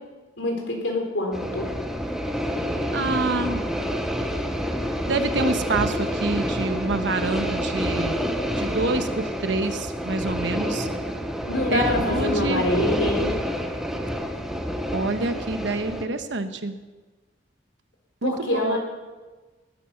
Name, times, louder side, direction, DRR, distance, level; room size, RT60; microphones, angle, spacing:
voice 1, 0.4-1.7 11.5-13.3 18.2-18.8, left 1 dB, 85° left, 2 dB, 4.1 m, -25 dB
sound 1, 1.3-16.0, equal, 5° right, 1.1 m, -28 dB
voice 2, 2.9-3.6 5.1-8.2 8.6-10.9 11.7-12.7 14.9-16.8 18.2-18.8, right 3 dB, 70° right, 8 dB, 1.2 m, -27 dB
18.5 x 11.0 x 5.9 m, 1.3 s
head